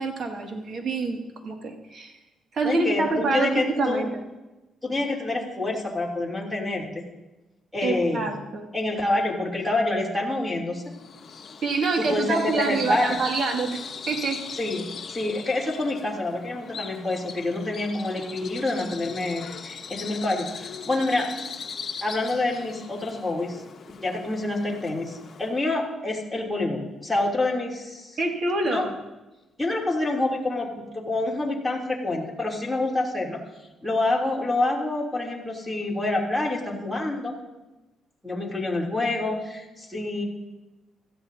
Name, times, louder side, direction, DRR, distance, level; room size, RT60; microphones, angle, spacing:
voice 1, 0.0-2.1 2.5-4.2 7.8-8.7 11.6-13.8 14.1-14.4 28.2-28.9, right 3 dB, 55° right, 2 dB, 2.2 m, -26 dB
voice 2, 2.6-4.1 4.8-7.0 7.7-8.3 8.7-10.9 12.0-13.2 14.5-21.3 22.0-23.6 24.0-28.2 28.6-28.9 29.6-33.4 33.8-37.3 38.2-40.2, left 2 dB, 5° left, -4 dB, 3.1 m, -27 dB
Bird vocalization bird call bird song, 10.9-25.7, left 6 dB, 50° left, 1.1 m, -40 dB
16.5 x 13.5 x 2.8 m, 1.1 s
cardioid pair, 90°, 0 cm